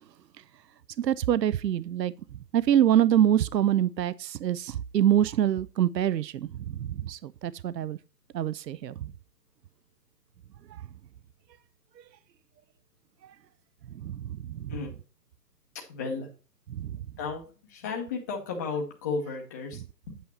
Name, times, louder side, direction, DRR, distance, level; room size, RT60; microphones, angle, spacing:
voice 1, 1.0-2.1 2.5-8.0 8.3-9.1 10.7-10.8 12.0-12.1 13.2-13.3 13.9-14.7 16.7-17.0, right 11 dB, 85° right, 0.6 m, -25 dB
voice 2, 15.7-16.3 17.2-17.4 17.7-20.2, left 4 dB, 10° left, 0.6 m, -34 dB
8.4 x 5.7 x 4.2 m
hypercardioid pair, 145°, 49 cm